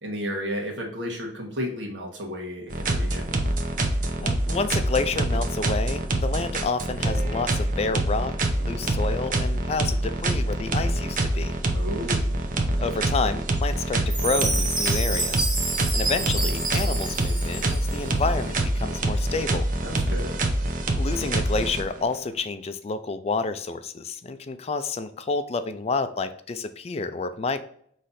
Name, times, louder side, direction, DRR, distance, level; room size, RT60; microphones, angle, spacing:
voice 1, 0.0-3.3 11.7-12.2 19.8-20.3, equal, 90° right, 0 dB, 1.4 m, -33 dB
sound 1, 2.7-22.2, right 1 dB, 45° right, 0.7 m, -25 dB
voice 2, 4.2-11.6 12.8-15.5 15.9-19.7 21.0-27.6, left 3 dB, 35° left, 10 dB, 0.3 m, -29 dB
Chime, 14.1-18.1, right 2 dB, 25° right, 1.3 m, -29 dB
5.6 x 3.2 x 2.6 m, 0.65 s
head